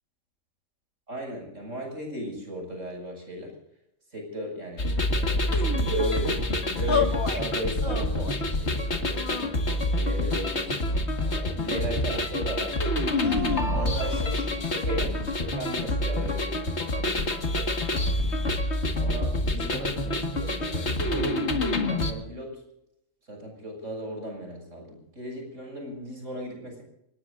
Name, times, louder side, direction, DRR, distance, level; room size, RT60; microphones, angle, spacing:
voice 1, 1.1-3.6 4.1-9.4 9.9-10.9 11.3-13.0 13.5-18.3 18.9-22.6 23.3-26.8, right 1 dB, 65° right, 2 dB, 7.1 m, -36 dB
sound 1, 4.8-22.1, left 1 dB, 55° left, 2.1 m, -27 dB
sound 2, 6.9-7.5 7.8-8.5 9.1-10.0 10.8-11.8 13.2-14.5, left 5 dB, 20° left, 1.8 m, -32 dB
27.5 x 19.5 x 2.6 m, 0.82 s
omnidirectional pair, 1.4 m